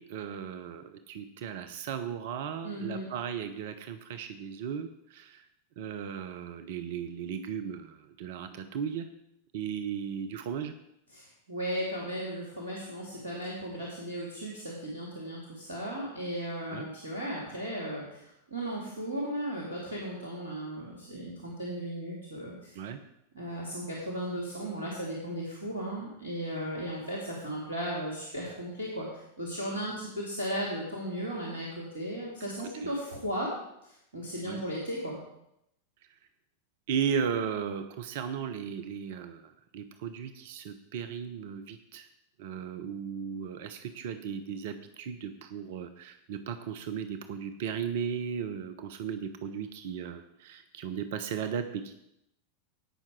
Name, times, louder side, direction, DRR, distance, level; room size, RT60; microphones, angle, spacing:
voice 1, 0.0-5.5 5.8-9.1 9.5-10.7 16.7-16.9 22.7-23.0 32.8-32.9 34.4-34.6 36.9-42.1 42.4-52.0, right 7 dB, 50° right, 9 dB, 0.8 m, -36 dB
voice 2, 2.6-3.1 11.1-22.7 23.3-29.1 29.4-33.5 33.8-35.2, equal, 80° right, -3 dB, 2.4 m, -36 dB
17.0 x 5.9 x 4.6 m, 0.80 s
figure-of-eight pair, 90°, 0 cm